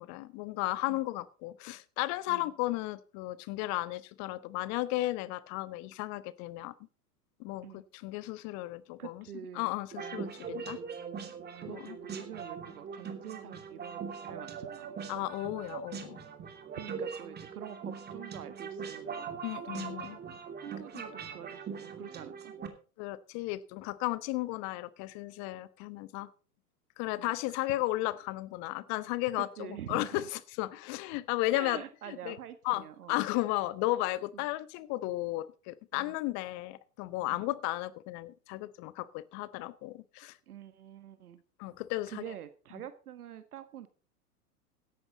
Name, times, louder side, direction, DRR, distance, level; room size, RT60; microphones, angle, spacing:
voice 1, 0.0-6.7 7.4-9.2 9.5-10.8 11.7-12.0 15.1-16.2 19.4-20.2 20.9-21.0 23.0-26.3 27.0-32.4 32.6-40.4 41.6-42.2, left 18 dB, 35° left, 17 dB, 1.1 m, -34 dB
voice 2, 9.0-9.7 11.5-15.0 16.7-19.4 19.7-22.5 27.2-27.3 29.4-30.2 31.5-33.2 34.3-34.4 35.9-36.1 37.3-37.5 40.5-41.4 42.1-43.9, right 10 dB, 70° right, 11 dB, 1.6 m, -46 dB
sound 1, 9.9-22.7, right 6 dB, 20° right, 2.8 m, -41 dB
16.5 x 11.5 x 4.0 m, 0.37 s
hypercardioid pair, 105°, 47 cm